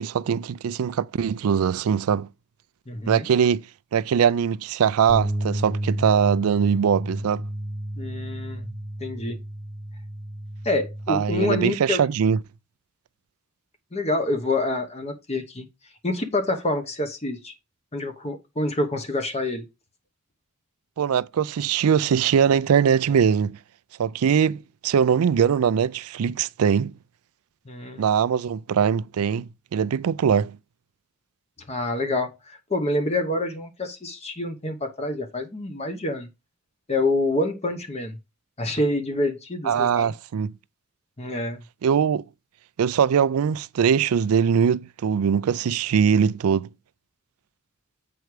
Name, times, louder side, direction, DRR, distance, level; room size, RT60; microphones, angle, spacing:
voice 1, 0.0-2.3 3.1-3.6 3.9-7.4 11.1-12.4 21.0-23.6 24.0-26.9 28.0-30.6 39.6-40.5 41.8-42.2 42.8-46.7, right 7 dB, 85° right, 0.4 m, -21 dB
voice 2, 2.9-3.3 8.0-8.7 9.0-9.4 10.6-12.1 13.9-15.7 16.0-17.5 17.9-19.6 27.7-28.0 31.7-36.3 36.9-38.2 38.6-40.1 41.2-41.6, left 2 dB, 30° left, 1.0 m, -27 dB
sound 1, 5.1-11.3, right 1 dB, 5° right, 1.0 m, -31 dB
7.8 x 4.7 x 4.7 m
head